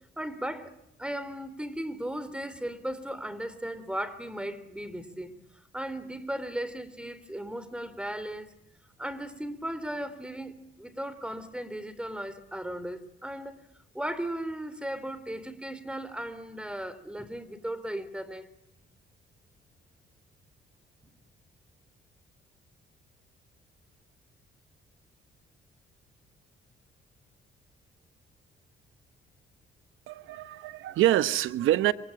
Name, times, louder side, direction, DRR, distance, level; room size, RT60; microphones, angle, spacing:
voice 1, 0.2-0.7 1.0-8.5 9.0-13.6 13.9-18.5, right 1 dB, 5° right, 3.6 m, -36 dB
voice 2, 30.1-31.9, right 13 dB, 85° right, 1.2 m, -25 dB
27.0 x 25.0 x 8.8 m
cardioid pair, 90°, 20 cm